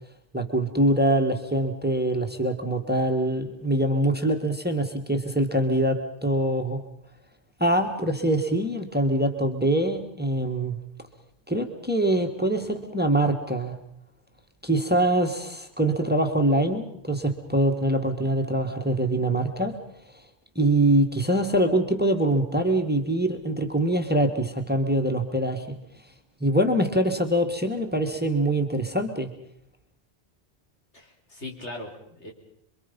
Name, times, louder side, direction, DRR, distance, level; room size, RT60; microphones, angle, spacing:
voice 1, 0.3-6.8 7.6-10.8 11.5-13.7 14.6-19.7 20.5-25.8 26.4-29.3, right 1 dB, 10° right, 5 dB, 1.8 m, -24 dB
voice 2, 30.9-32.3, left 2 dB, 75° left, 1 dB, 4.2 m, -39 dB
27.5 x 23.5 x 5.4 m, 0.72 s
omnidirectional pair, 1.2 m